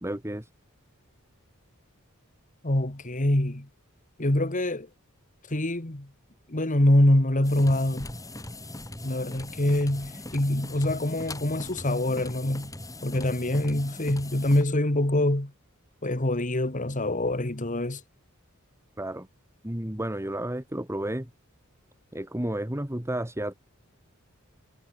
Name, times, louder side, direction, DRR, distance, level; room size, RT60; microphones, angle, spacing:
voice 1, 0.0-0.5 19.0-19.3 19.6-21.3 22.1-23.5, right 1 dB, 15° right, 2.1 m, -32 dB
voice 2, 2.6-3.7 4.2-4.9 5.5-6.1 6.5-8.1 9.0-12.7 13.0-15.5 16.0-18.0, left 1 dB, 40° left, 2.1 m, -25 dB
sound 1, 7.4-14.7, left 1 dB, 15° left, 3.7 m, -40 dB
head